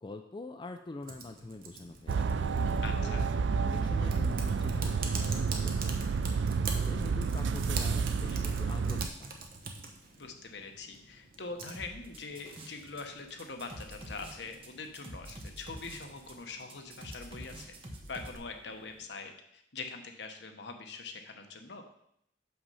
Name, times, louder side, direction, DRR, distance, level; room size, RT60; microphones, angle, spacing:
voice 1, 0.0-2.4 2.6-5.8 6.6-9.4, left 2 dB, 25° left, 5 dB, 0.4 m, -44 dB
Typing, 1.0-19.1, right 4 dB, 55° right, 1.1 m, -46 dB
sound 1, 2.1-9.1, right 5 dB, 80° right, 0.4 m, -30 dB
voice 2, 2.8-3.2 10.2-17.7 18.1-21.8, left 4 dB, 65° left, 5 dB, 1.0 m, -43 dB
sound 2, 11.7-13.0 13.3-18.4, right 1 dB, 30° right, 1.2 m, -46 dB
6.6 x 5.7 x 5.5 m, 0.75 s
head